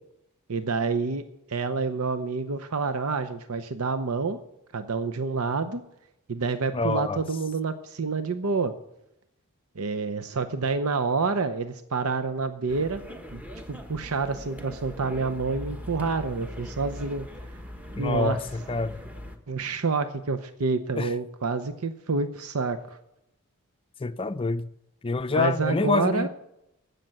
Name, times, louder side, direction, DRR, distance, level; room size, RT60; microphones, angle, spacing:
voice 1, 0.5-1.2 1.5-4.4 4.7-5.8 6.3-8.7 9.8-13.0 13.3-13.4 13.7-17.3 18.0-18.4 19.5-23.0 25.3-26.3, right 4 dB, 85° right, 0.7 m, -28 dB
voice 2, 6.7-7.2 17.9-18.4 18.7-19.0 21.0-21.1 24.0-24.7 25.0-26.3, left 3 dB, 25° left, 0.5 m, -26 dB
sound 1, 12.7-19.4, left 1 dB, 10° right, 1.1 m, -41 dB
15.5 x 6.7 x 8.8 m
head